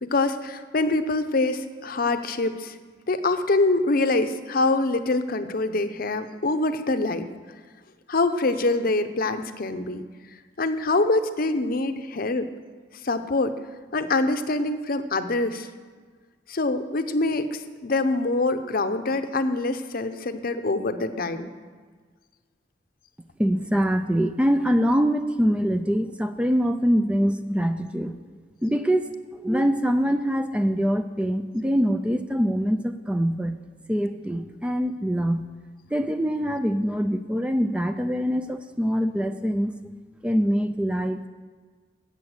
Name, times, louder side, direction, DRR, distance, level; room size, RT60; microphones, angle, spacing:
voice 1, 0.0-2.7 3.1-7.3 8.1-10.0 10.6-12.5 13.0-13.5 13.9-15.7 16.5-21.5, left 2 dB, 50° left, 9 dB, 0.7 m, -25 dB
voice 2, 23.4-28.2 28.6-33.6 33.9-35.5 35.9-39.7 40.2-41.3, equal, 5° right, 8 dB, 0.4 m, -24 dB
14.0 x 8.4 x 6.6 m, 1.5 s
head